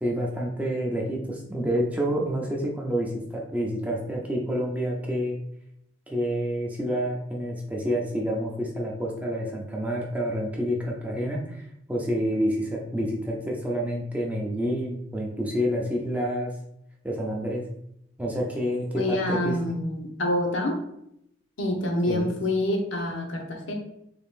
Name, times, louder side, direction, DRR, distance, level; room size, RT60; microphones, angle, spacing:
voice 1, 0.0-5.4 6.1-16.5 17.0-17.6 18.2-19.6 22.1-22.3, equal, 10° right, -2 dB, 0.6 m, -28 dB
voice 2, 18.9-20.8 21.6-23.7, left 1 dB, 85° left, 2 dB, 0.8 m, -27 dB
3.7 x 3.6 x 2.5 m, 0.77 s
head